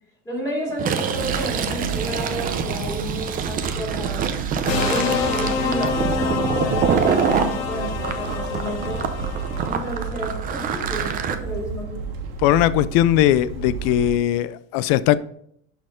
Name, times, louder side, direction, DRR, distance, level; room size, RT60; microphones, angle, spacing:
voice 1, 0.2-4.3 4.7-9.1 9.6-12.1, equal, 10° left, 2.8 m, -31 dB
Fill (with liquid), 0.7-7.5 8.0-11.3, right 7 dB, 25° right, 0.6 m, -26 dB
sound 1, 1.1-14.2, right 5 dB, 65° right, 1.7 m, -32 dB
sound 2, 4.7-10.0, left 5 dB, 75° left, 1.4 m, -27 dB
voice 2, 12.4-15.1, left 13 dB, 55° left, 0.5 m, -19 dB
11.5 x 4.3 x 3.7 m
cardioid pair, 165°, 32 cm